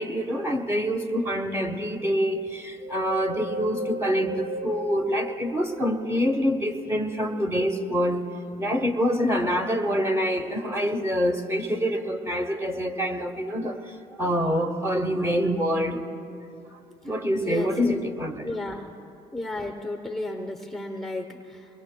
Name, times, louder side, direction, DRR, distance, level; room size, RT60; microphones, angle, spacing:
voice 1, 0.0-8.3 8.6-16.0 16.7-16.8 17.0-18.6, equal, 15° right, 5 dB, 1.1 m, -26 dB
Wind, 2.8-6.3 6.9-8.1 8.7-8.8, right 1 dB, 55° right, 1.6 m, -37 dB
voice 2, 17.4-18.0 18.4-18.8 19.3-21.7, left 1 dB, ahead, 3 dB, 0.8 m, -33 dB
24.5 x 20.5 x 2.2 m, 2.6 s
cardioid pair, 110°, 17 cm